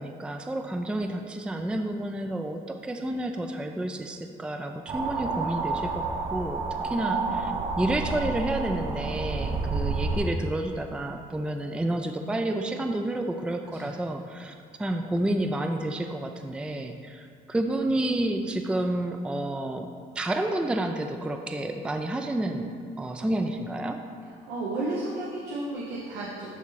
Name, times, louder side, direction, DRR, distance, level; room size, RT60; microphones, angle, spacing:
voice 1, 0.0-6.0 6.3-19.9 20.2-24.0, right 1 dB, 5° right, 5 dB, 0.4 m, -30 dB
sound 1, 4.9-10.2, right 3 dB, 35° right, 1.0 m, -30 dB
voice 2, 24.5-26.5, right 2 dB, 90° right, -5 dB, 1.2 m, -33 dB
11.0 x 4.2 x 4.1 m, 2.2 s
cardioid pair, 110°, 17 cm